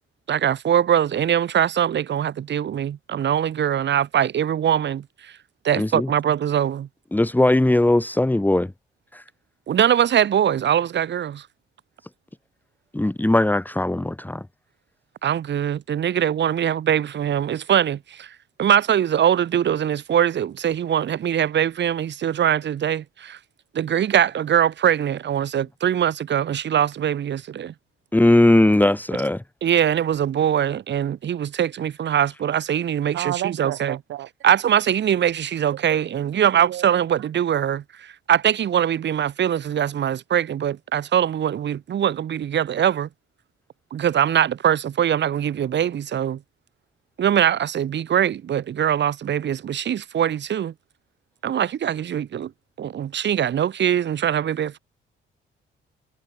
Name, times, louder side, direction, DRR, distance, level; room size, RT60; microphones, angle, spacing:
voice 1, 0.3-5.3 5.6-6.9 9.7-11.5 15.2-18.3 18.6-23.4 23.7-27.7 29.6-34.0 34.4-43.1 43.9-46.4 47.2-50.7 51.4-52.5 52.8-54.8, right 9 dB, 60° right, 5.9 m, -22 dB
voice 2, 5.8-6.1 7.1-8.7 9.1-9.2 12.9-14.5 28.1-29.4, left 1 dB, 10° left, 2.1 m, -19 dB
voice 3, 33.1-34.3 35.9-36.0 36.5-36.9, right 13 dB, 80° right, 4.5 m, -30 dB
cardioid pair, 90°, 20 cm